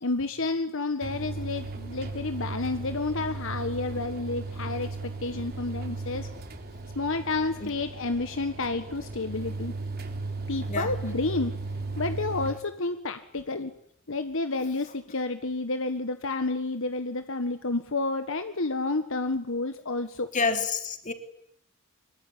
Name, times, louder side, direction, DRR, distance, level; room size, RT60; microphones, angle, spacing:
voice 1, 0.0-6.3 6.9-9.7 10.5-11.5 12.0-13.7 14.1-20.3, left 3 dB, 65° left, 9 dB, 1.5 m, -30 dB
sound 1, 1.0-12.5, right 3 dB, 45° right, 3.6 m, -36 dB
voice 2, 20.3-21.1, left 4 dB, 35° left, 7 dB, 3.2 m, -28 dB
24.5 x 22.5 x 10.0 m, 0.71 s
head